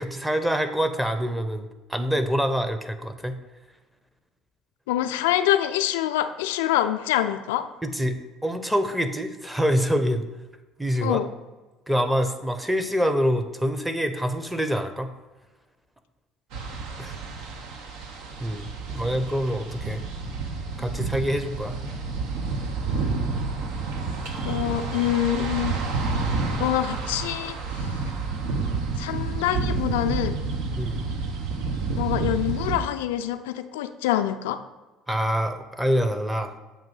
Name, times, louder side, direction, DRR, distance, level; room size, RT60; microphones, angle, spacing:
voice 1, 0.0-3.4 7.8-10.3 10.8-11.2 11.9-15.1 17.0-17.2 18.4-18.7 18.9-20.0 20.8-21.8 30.8-31.0 35.1-36.5, equal, 5° right, 8 dB, 0.7 m, -25 dB
voice 2, 4.9-7.7 11.0-11.3 24.4-25.8 26.6-28.0 29.0-30.4 32.0-34.6, left 12 dB, 80° left, 10 dB, 0.3 m, -25 dB
sound 1, 16.5-32.8, right 4 dB, 70° right, 0.7 m, -29 dB
7.3 x 2.6 x 5.4 m, 1.2 s
hypercardioid pair, 65°, 0 cm